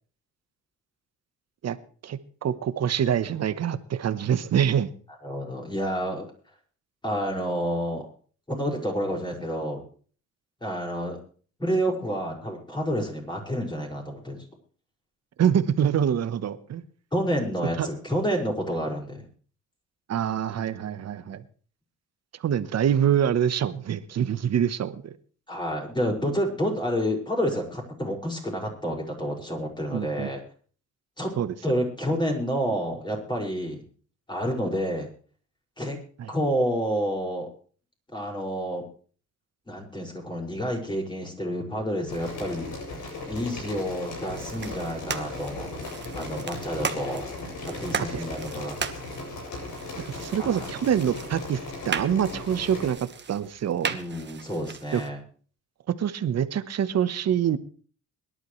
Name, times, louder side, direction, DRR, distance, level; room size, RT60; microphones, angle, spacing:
voice 1, 2.0-4.9 15.4-16.8 17.8-17.9 20.1-21.4 22.4-25.1 29.9-30.3 31.4-31.5 36.2-36.3 48.1-48.2 50.1-51.6 51.8-54.0 54.9-55.0 55.9-57.6, right 9 dB, 55° right, 13 dB, 1.1 m, -25 dB
voice 2, 5.2-6.3 7.0-8.1 8.5-9.8 10.6-11.2 11.6-14.4 17.1-19.3 25.5-30.4 31.2-31.3 31.6-33.9 34.3-35.1 35.8-36.0 36.3-37.5 38.1-38.8 39.7-42.7 43.3-45.8 46.1-47.3 47.6-48.8 50.4-50.7 53.9-55.2, equal, 15° left, 0 dB, 5.8 m, -29 dB
sound 1, 42.1-52.9, left 2 dB, 70° left, 7.7 m, -37 dB
sound 2, 44.3-55.1, right 6 dB, 35° right, 1.4 m, -37 dB
22.5 x 11.5 x 3.2 m, 0.42 s
cardioid pair, 90°, 30 cm